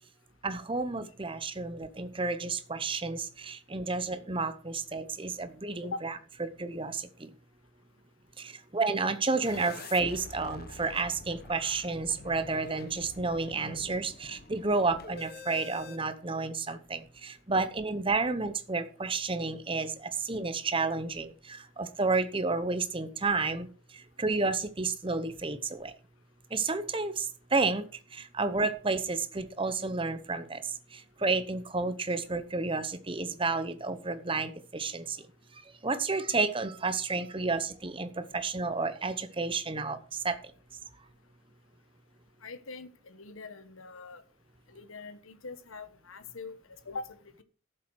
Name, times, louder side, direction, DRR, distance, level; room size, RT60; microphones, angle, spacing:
voice 1, 0.4-6.1 6.4-7.3 8.4-25.9 26.5-35.3 35.5-40.4, right 3 dB, 25° right, 0.8 m, -31 dB
sound 1, 9.4-16.0, left 3 dB, 45° left, 0.9 m, -47 dB
voice 2, 42.4-44.2 44.7-46.6 46.8-47.4, left 3 dB, 70° left, 1.1 m, -42 dB
13.0 x 7.6 x 4.7 m
head